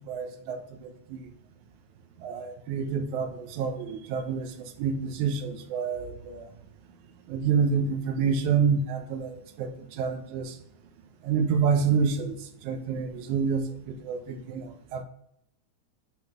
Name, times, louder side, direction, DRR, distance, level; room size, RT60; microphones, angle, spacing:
voice 1, 0.1-1.3 2.2-6.5 7.3-10.6 11.2-12.4 12.6-15.0, right 6 dB, 85° right, 2.3 m, -28 dB
7.2 x 6.0 x 5.9 m
omnidirectional pair, 3.3 m